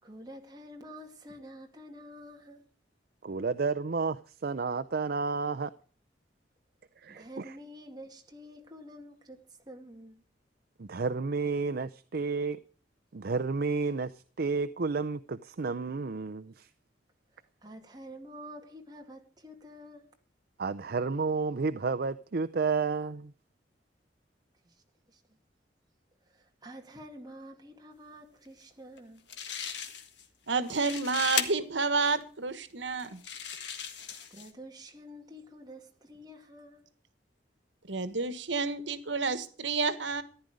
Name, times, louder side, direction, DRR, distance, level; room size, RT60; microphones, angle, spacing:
voice 1, 0.0-2.6 7.1-10.2 17.6-20.1 24.6-24.7 25.1-25.2 26.3-29.3 34.3-36.9, equal, 25° right, 2.3 m, -48 dB
voice 2, 3.2-5.7 7.0-7.4 10.8-12.6 13.1-16.7 20.6-23.3, right 4 dB, 55° right, 0.6 m, -31 dB
sound 1, 29.0-29.1 29.3-30.2 30.6-31.5 32.2-32.3 33.0-34.5, left 7 dB, 75° left, 1.7 m, -36 dB
voice 3, 30.5-33.2 37.9-40.2, right 4 dB, 90° right, 1.4 m, -30 dB
14.5 x 10.5 x 4.9 m
head